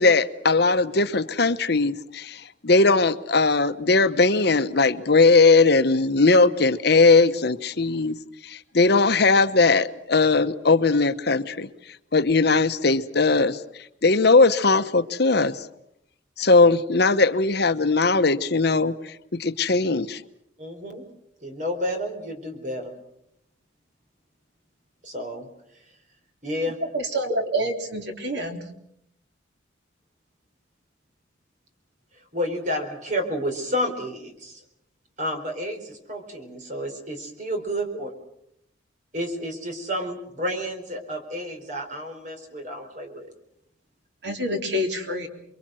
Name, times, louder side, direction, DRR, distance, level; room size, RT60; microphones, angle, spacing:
voice 1, 0.0-8.1 8.4-11.7 12.1-13.6 14.0-15.7 16.4-19.1 19.4-20.2, left 3 dB, 60° left, 10 dB, 1.0 m, -19 dB
voice 2, 20.6-21.0 21.4-22.9 25.0-25.5 26.4-26.8 32.3-34.6 35.2-38.1 39.1-43.3, equal, 40° right, 5 dB, 4.4 m, -30 dB
voice 3, 26.9-28.6 44.2-45.3, equal, 60° right, 4 dB, 3.5 m, -27 dB
29.5 x 22.5 x 6.3 m, 0.76 s
head